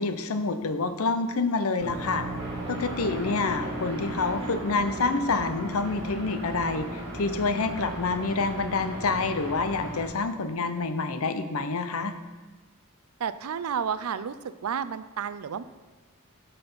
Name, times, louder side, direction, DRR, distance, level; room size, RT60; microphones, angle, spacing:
voice 1, 0.0-2.3 2.7-12.1, left 3 dB, 70° left, 9 dB, 0.7 m, -27 dB
sound 1, 1.8-10.0, right 1 dB, 25° right, 2.9 m, -36 dB
voice 2, 13.2-14.3 14.6-15.6, right 7 dB, 70° right, 14 dB, 0.4 m, -31 dB
12.0 x 4.2 x 5.4 m, 1.3 s
head